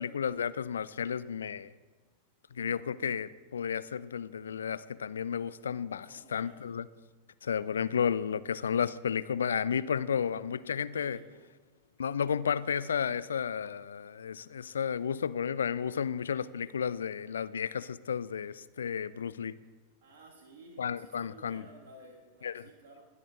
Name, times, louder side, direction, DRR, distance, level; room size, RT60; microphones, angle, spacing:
voice 1, 0.0-1.7 2.5-6.9 7.4-11.2 12.0-19.6 20.8-21.7 22.4-22.7, left 7 dB, 70° left, 17 dB, 0.3 m, -32 dB
voice 2, 6.0-6.6 10.9-11.4 20.0-23.0, right 2 dB, 55° right, -1 dB, 1.9 m, -54 dB
22.5 x 8.5 x 2.5 m, 1.3 s
figure-of-eight pair, 90°, 0 cm